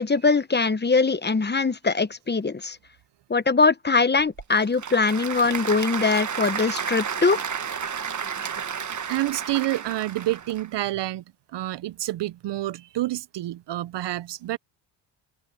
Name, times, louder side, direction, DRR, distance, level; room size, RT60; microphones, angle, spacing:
voice 1, 0.0-2.8 3.3-7.4, left 4 dB, 20° left, 1.2 m, -22 dB
Applause / Crowd, 4.2-10.7, right 7 dB, 35° right, 1.4 m, -32 dB
voice 2, 9.1-11.2 11.5-14.6, right 15 dB, 60° right, 0.7 m, -28 dB
cardioid pair, 80°, 48 cm